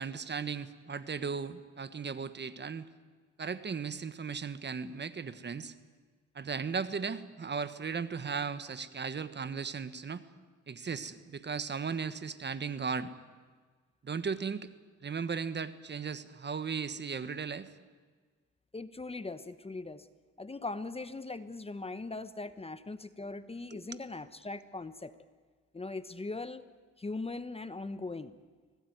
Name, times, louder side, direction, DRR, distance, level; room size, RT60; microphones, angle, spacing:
voice 1, 0.0-2.9 3.4-5.7 6.3-10.2 10.7-13.1 14.0-14.7 15.0-17.7 23.7-23.8, right 5 dB, 35° right, 13 dB, 1.4 m, -36 dB
voice 2, 18.7-20.1 20.4-25.2 25.7-26.6 27.0-28.3, left 3 dB, 20° left, 12 dB, 1.1 m, -40 dB
25.0 x 18.5 x 9.5 m, 1.5 s
cardioid pair, 90°, 30 cm